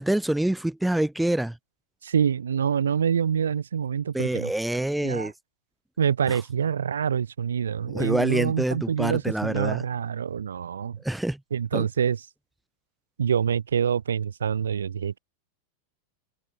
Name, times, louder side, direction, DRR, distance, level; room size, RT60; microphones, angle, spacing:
voice 1, 0.0-1.6 4.1-5.3 6.3-6.4 7.9-9.8 11.0-11.4 11.7-11.9, right 1 dB, 5° right, 0.7 m, -26 dB
voice 2, 2.0-4.5 5.0-5.3 6.0-11.0 11.5-12.2 13.2-15.2, right 8 dB, 70° right, 0.9 m, -26 dB
figure-of-eight pair, 90°, 0 cm